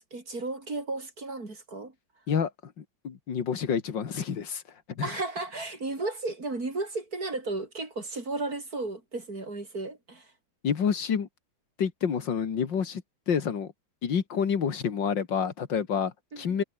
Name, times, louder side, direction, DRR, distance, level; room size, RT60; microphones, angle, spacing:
voice 1, 0.0-1.9 5.0-10.3 16.3-16.6, right 2 dB, 45° right, 4.8 m, -34 dB
voice 2, 2.3-4.6 4.9-5.2 10.6-11.3 11.8-13.7 14.0-16.6, left 7 dB, 65° left, 2.6 m, -29 dB
omnidirectional pair, 2.1 m